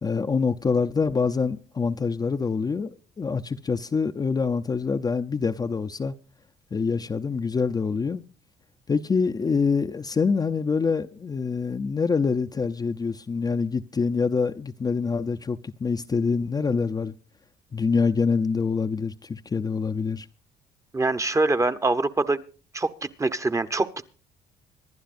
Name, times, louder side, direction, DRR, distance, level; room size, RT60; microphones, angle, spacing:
voice 1, 0.0-6.1 6.7-8.2 8.9-17.1 17.7-20.3, left 5 dB, 25° left, 0.6 m, -25 dB
voice 2, 20.9-22.4 22.7-24.1, right 2 dB, 20° right, 0.9 m, -24 dB
25.0 x 11.5 x 2.5 m
cardioid pair, 110°, 17 cm